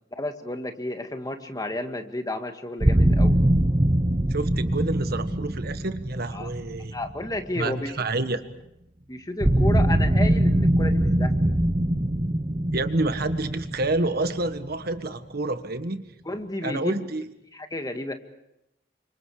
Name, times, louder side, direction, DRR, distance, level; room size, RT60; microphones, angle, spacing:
voice 1, 0.2-3.4 6.3-6.5 6.9-7.9 9.1-11.5 16.3-17.0 17.5-18.1, left 1 dB, 20° left, 6 dB, 1.9 m, -32 dB
sound 1, 2.8-7.8 9.4-15.1, right 1 dB, 25° right, 0.8 m, -23 dB
voice 2, 4.3-7.0 7.5-8.4 12.7-16.0 16.6-17.2, right 2 dB, 55° right, 10 dB, 1.5 m, -28 dB
29.5 x 26.0 x 5.0 m, 0.83 s
head